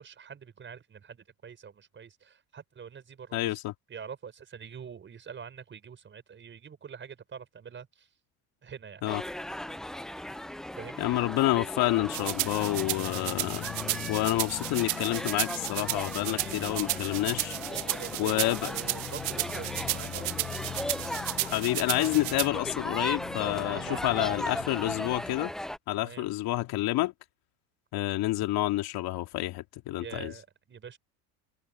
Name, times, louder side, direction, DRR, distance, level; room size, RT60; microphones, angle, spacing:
voice 1, 0.0-3.6 3.9-8.1 8.6-9.2 10.8-11.1 16.3-17.1 17.7-20.4 23.6-24.6 26.0-26.3 30.0-31.0, right 7 dB, 25° right, 5.7 m, -45 dB
voice 2, 3.3-3.7 9.0-9.2 11.0-13.7 14.1-17.6 18.2-18.7 21.4-25.5 25.9-27.1 27.9-30.3, left 17 dB, 55° left, 3.1 m, -29 dB
sound 1, 9.1-25.8, left 1 dB, ahead, 0.4 m, -38 dB
sound 2, 12.1-25.1, left 10 dB, 40° left, 3.5 m, -42 dB
sound 3, 12.1-22.5, right 26 dB, 80° right, 0.6 m, -33 dB
open air
supercardioid pair, 130°, 43 cm